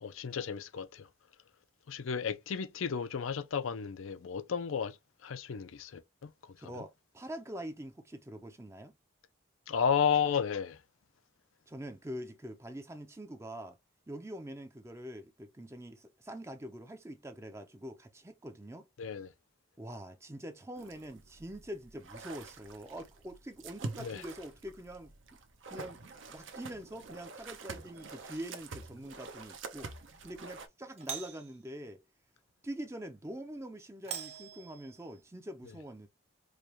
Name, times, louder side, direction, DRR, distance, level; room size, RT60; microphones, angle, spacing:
voice 1, 0.0-1.1 1.9-5.0 5.2-6.3 6.8-6.9 9.7-10.8 19.0-19.3 24.0-24.2, left 7 dB, 85° left, 0.5 m, -33 dB
voice 2, 6.6-8.9 11.7-13.8 14.1-18.9 19.8-25.1 25.7-26.0 26.3-29.9 30.2-32.0 32.6-36.1, right 1 dB, 15° right, 0.4 m, -44 dB
sound 1, 20.8-30.7, right 3 dB, 70° right, 0.7 m, -47 dB
Doorbell, 27.9-28.4 30.9-31.6 34.0-35.2, right 7 dB, 30° right, 0.9 m, -44 dB
4.9 x 2.2 x 2.9 m
head